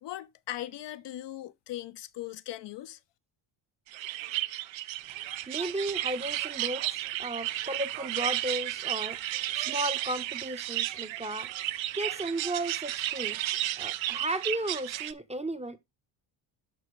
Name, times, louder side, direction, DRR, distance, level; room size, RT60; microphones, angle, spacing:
voice 1, 0.0-3.0, left 14 dB, 60° left, 0.6 m, -39 dB
sound 1, 3.9-15.1, right 14 dB, 70° right, 0.6 m, -33 dB
voice 2, 5.5-9.2 9.5-11.5 11.9-13.5 13.8-15.8, right 1 dB, 15° right, 0.7 m, -34 dB
12.0 x 4.1 x 3.1 m
cardioid pair, 95°, 49 cm